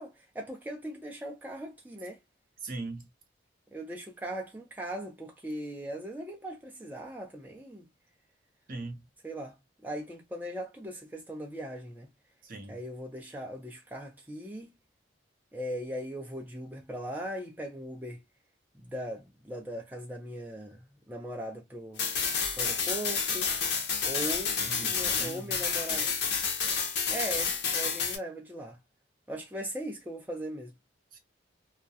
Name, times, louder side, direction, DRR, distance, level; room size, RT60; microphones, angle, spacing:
voice 1, 0.0-2.2 3.7-7.9 9.2-9.5 9.8-12.1 12.7-14.7 15.5-18.2 18.8-22.0 22.5-23.5 24.0-26.1 27.1-28.8 29.3-30.7, equal, 10° right, 0.5 m, -39 dB
voice 2, 2.6-3.1 8.7-9.1 12.4-12.8 24.7-25.5 31.1-31.2, right 2 dB, 50° right, 0.6 m, -40 dB
sound 1, 22.0-28.2, left 6 dB, 60° left, 0.7 m, -30 dB
2.3 x 2.2 x 2.6 m
head